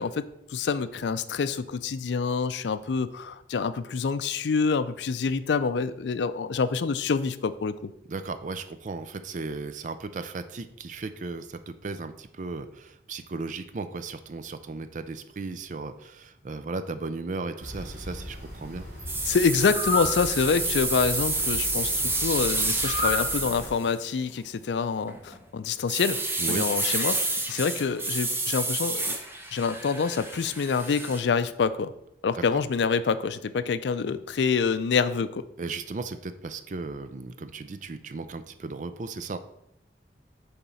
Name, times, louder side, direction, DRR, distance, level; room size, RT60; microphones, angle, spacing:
voice 1, 0.0-7.9 19.2-26.2 26.5-29.2 29.5-31.9 32.2-35.4, left 5 dB, 80° left, 14 dB, 0.4 m, -26 dB
voice 2, 8.1-18.9 26.4-26.7 32.4-32.6 35.6-39.4, right 3 dB, 45° right, 10 dB, 0.5 m, -36 dB
sound 1, 17.6-23.7, left 2 dB, 75° right, 2.3 m, -34 dB
sound 2, 19.1-24.0 25.0-25.4 25.9-31.2, right 2 dB, 15° right, 0.9 m, -29 dB
6.9 x 3.7 x 5.6 m, 0.79 s
head